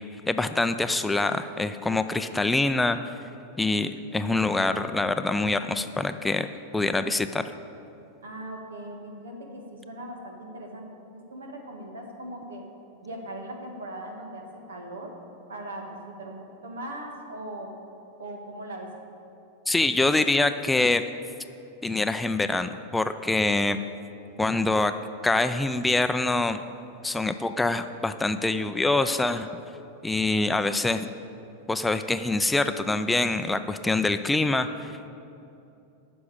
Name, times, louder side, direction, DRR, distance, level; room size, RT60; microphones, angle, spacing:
voice 1, 0.3-3.0 3.6-6.5 6.7-7.5 19.7-21.0 21.8-23.8 24.4-25.0 25.2-26.6 27.0-29.5 30.0-31.1 31.7-35.0, left 2 dB, 10° left, 10 dB, 0.4 m, -25 dB
voice 2, 8.2-10.8 11.3-12.6 13.0-15.1 15.5-17.7 18.2-18.9, right 1 dB, 85° right, 2 dB, 1.8 m, -39 dB
9.5 x 6.2 x 8.7 m, 2.8 s
hypercardioid pair, 105°, 0 cm